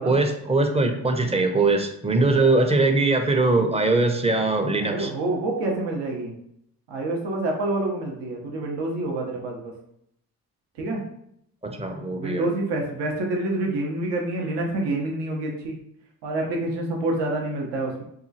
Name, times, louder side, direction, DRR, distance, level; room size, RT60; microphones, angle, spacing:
voice 1, 0.0-5.1 11.6-12.5, right 3 dB, 15° right, 5 dB, 0.5 m, -21 dB
voice 2, 4.8-6.3 6.9-9.7 10.8-11.0 12.1-15.8 16.2-18.0, right 2 dB, 75° right, 0 dB, 0.7 m, -27 dB
2.8 x 2.3 x 2.6 m, 0.73 s
supercardioid pair, 50°, 42 cm